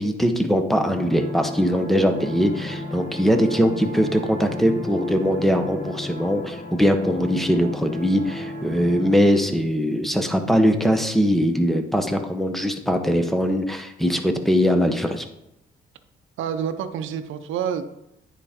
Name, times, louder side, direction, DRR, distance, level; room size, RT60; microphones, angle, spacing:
voice 1, 0.0-15.2, equal, ahead, 6 dB, 1.0 m, -21 dB
sound 1, 0.9-9.2, left 2 dB, 40° left, 1.1 m, -34 dB
voice 2, 16.4-17.9, right 8 dB, 80° right, 8 dB, 0.6 m, -28 dB
9.7 x 4.9 x 3.7 m, 0.84 s
cardioid pair, 90°, 20 cm